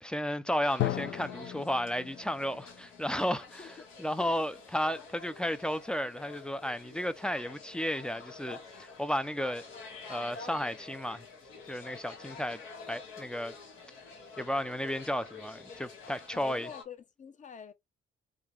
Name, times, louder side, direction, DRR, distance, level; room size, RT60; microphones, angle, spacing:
voice 1, 0.0-9.6 10.1-11.3 11.7-12.6 12.9-13.5 14.4-16.7, equal, 5° left, 0.4 m, -33 dB
sound 1, 0.6-16.8, left 4 dB, 90° left, 1.6 m, -49 dB
Drum, 0.8-4.5, left 14 dB, 70° left, 0.4 m, -37 dB
voice 2, 16.3-17.7, left 6 dB, 40° left, 0.7 m, -45 dB
3.7 x 2.2 x 3.1 m
cardioid pair, 90°, 20 cm